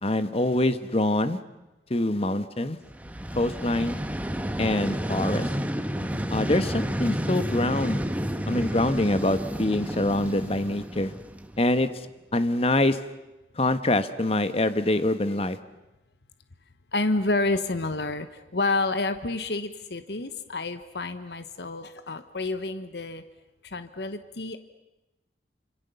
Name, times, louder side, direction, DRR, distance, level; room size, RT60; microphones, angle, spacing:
voice 1, 0.0-1.4 1.9-2.8 3.4-4.0 4.6-5.5 6.3-8.0 8.4-11.1 11.6-11.9 12.3-13.0 13.6-15.6, left 1 dB, 35° left, 11 dB, 1.3 m, -25 dB
Vehicle, 2.9-11.8, equal, 10° right, 1.2 m, -31 dB
voice 2, 16.9-18.3 18.5-23.2 23.7-24.6, left 2 dB, 65° left, 10 dB, 1.2 m, -29 dB
28.0 x 26.0 x 7.0 m, 1.0 s
head